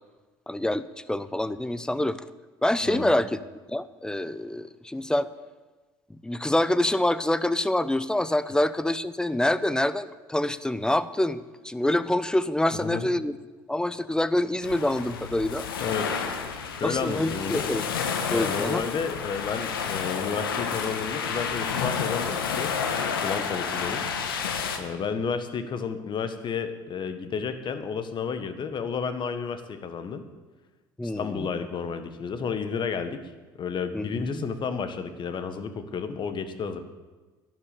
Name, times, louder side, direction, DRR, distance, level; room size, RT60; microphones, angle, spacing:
voice 1, 0.5-2.2 2.6-3.4 3.7-5.3 6.2-13.4 13.7-15.7 16.8-17.8 18.3-18.8 31.0-31.5 33.9-34.4, left 1 dB, 5° left, 15 dB, 0.7 m, -26 dB
voice 2, 2.8-3.1 12.7-13.1 15.8-16.2 16.6-17.7 18.3-24.0 24.8-30.2 31.0-33.3 33.6-36.8, left 6 dB, 40° left, 9 dB, 1.5 m, -32 dB
sound 1, 14.6-24.8, left 6 dB, 85° left, 1.3 m, -30 dB
11.5 x 11.0 x 6.8 m, 1.3 s
hypercardioid pair, 65°, 12 cm